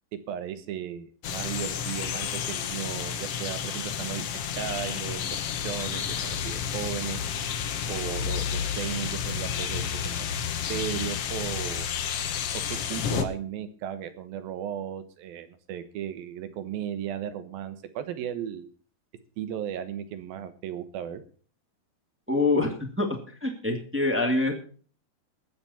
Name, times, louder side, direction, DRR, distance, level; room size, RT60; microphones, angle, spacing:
voice 1, 0.3-4.3 4.6-5.4 5.6-7.2 7.9-10.3 10.7-11.9 12.7-18.7 19.4-21.2, right 9 dB, 75° right, 11 dB, 3.0 m, -35 dB
sound 1, 1.2-13.2, left 8 dB, 85° left, 1.3 m, -31 dB
voice 2, 22.3-23.1 23.4-24.5, left 2 dB, 5° right, 2 dB, 1.3 m, -25 dB
20.0 x 8.5 x 4.3 m, 0.42 s
omnidirectional pair, 4.4 m